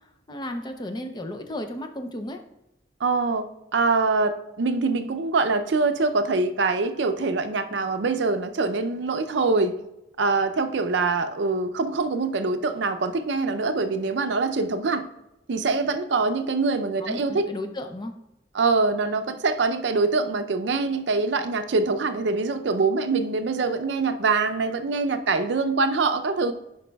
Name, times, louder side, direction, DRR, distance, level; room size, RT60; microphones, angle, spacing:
voice 1, 0.3-2.4 17.0-18.1, left 1 dB, 25° left, 5 dB, 0.5 m, -34 dB
voice 2, 3.0-9.8 10.2-15.1 15.5-17.5 18.5-26.5, right 3 dB, 75° right, 8 dB, 0.5 m, -24 dB
10.0 x 5.2 x 2.3 m, 0.87 s
head